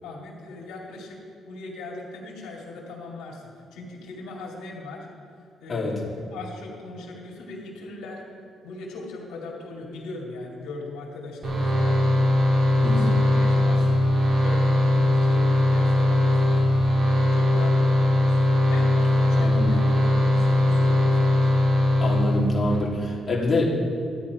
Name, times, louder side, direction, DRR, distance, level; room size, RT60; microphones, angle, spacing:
voice 1, 0.0-1.2 1.4-5.1 5.6-8.2 8.6-12.4 12.8-17.0 17.3-18.4 18.7-21.6, left 2 dB, 90° left, -3 dB, 2.3 m, -39 dB
sound 1, 11.4-22.8, left 1 dB, 50° right, 2.3 m, -20 dB
voice 2, 12.8-13.1 19.4-19.8 22.0-23.6, left 2 dB, 30° left, -5 dB, 2.7 m, -26 dB
13.0 x 10.0 x 4.8 m, 2.4 s
cardioid pair, 90°, 0 cm